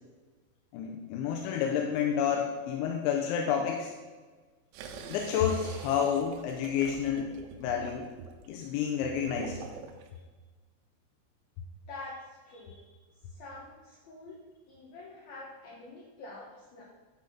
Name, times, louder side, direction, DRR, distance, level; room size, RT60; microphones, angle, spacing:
voice 1, 0.7-3.9 5.1-7.3 7.6-8.1 8.5-9.6, left 8 dB, 85° left, 2 dB, 2.9 m, -29 dB
sound 1, 4.7-10.1, right 5 dB, 80° right, 2.7 m, -45 dB
voice 2, 11.9-12.8 13.3-14.4 14.7-16.8, left 2 dB, 65° left, -5 dB, 2.7 m, -46 dB
11.0 x 3.9 x 5.8 m, 1.3 s
omnidirectional pair, 5.6 m